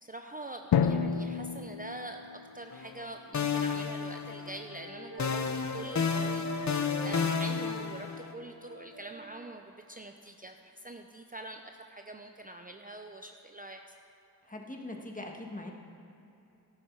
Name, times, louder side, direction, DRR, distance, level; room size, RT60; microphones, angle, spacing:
voice 1, 0.0-13.8, right 2 dB, 25° right, 4 dB, 0.6 m, -44 dB
Drum, 0.7-3.2, left 7 dB, 85° left, 0.5 m, -30 dB
sound 1, 2.7-3.1 3.3-4.8 5.2-8.3, left 6 dB, 45° left, 0.7 m, -31 dB
Wind instrument woodwind instrument, 3.8-9.3, right 3 dB, 75° right, 2.1 m, -46 dB
voice 2, 14.5-15.7, left 1 dB, 20° left, 1 dB, 1.7 m, -41 dB
13.5 x 11.5 x 4.7 m, 2.9 s
wide cardioid pair, 60°, 38 cm